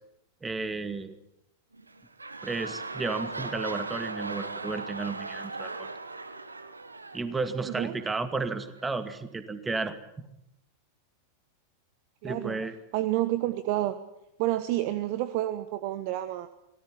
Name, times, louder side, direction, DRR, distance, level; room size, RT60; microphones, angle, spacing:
voice 1, 0.4-1.2 2.4-5.9 7.1-10.3 12.2-12.7, right 3 dB, 10° right, 11 dB, 2.2 m, -33 dB
sound 1, 1.7-8.1 8.8-8.9, right 3 dB, 80° right, 1.7 m, -38 dB
voice 2, 7.6-8.0 12.2-12.6 12.9-14.0 14.4-16.5, right 15 dB, 45° right, 13 dB, 1.3 m, -29 dB
25.5 x 18.5 x 10.0 m, 0.83 s
figure-of-eight pair, 90°, 0 cm